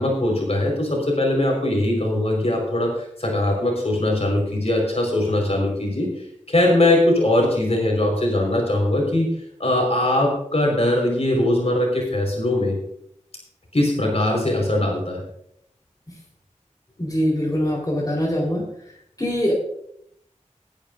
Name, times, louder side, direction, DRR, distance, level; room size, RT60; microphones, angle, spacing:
voice 1, 0.0-6.1 6.5-12.8 13.7-15.2, left 1 dB, 55° left, 0 dB, 4.8 m, -21 dB
voice 2, 17.0-18.6 19.2-19.5, equal, 30° left, -2 dB, 4.1 m, -23 dB
19.5 x 10.5 x 2.6 m, 0.72 s
wide cardioid pair, 55°, 13 cm